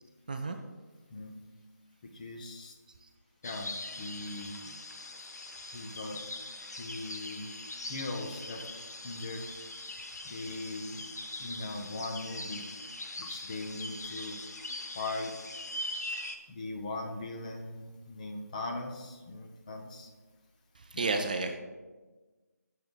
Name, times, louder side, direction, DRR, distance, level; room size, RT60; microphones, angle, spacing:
voice 1, 2.0-2.7 3.4-4.7 5.7-6.2 6.8-7.5 7.9-8.6 9.0-9.4 10.2-11.0 11.4-12.6 13.2-14.4 15.0-15.3 16.5-20.1 20.9-21.2, left 2 dB, 25° left, 3 dB, 0.6 m, -39 dB
sound 1, 3.4-16.4, left 2 dB, 65° left, 0.8 m, -42 dB
voice 2, 20.8-21.6, right 3 dB, 30° right, 5 dB, 0.3 m, -31 dB
10.0 x 6.5 x 2.2 m, 1.3 s
figure-of-eight pair, 155°, 9 cm